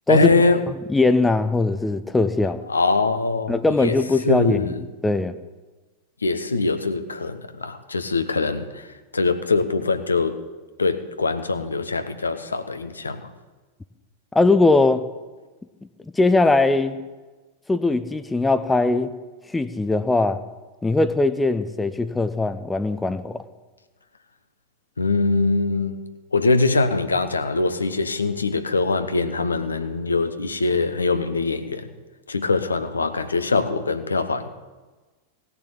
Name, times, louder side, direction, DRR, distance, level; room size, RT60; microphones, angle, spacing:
voice 1, 0.1-0.6 2.7-4.0 4.2-4.8 6.2-8.8 9.1-10.4 10.8-13.3 25.0-26.0 26.3-31.9 32.3-34.5, left 3 dB, 75° left, 9 dB, 1.0 m, -22 dB
voice 2, 0.9-2.6 3.5-4.8 5.0-5.3 14.3-15.1 16.1-17.0 17.7-19.1 19.5-20.4 20.8-23.4, left 3 dB, 10° left, 11 dB, 0.7 m, -20 dB
17.5 x 7.0 x 8.6 m, 1.3 s
figure-of-eight pair, 90°, 0 cm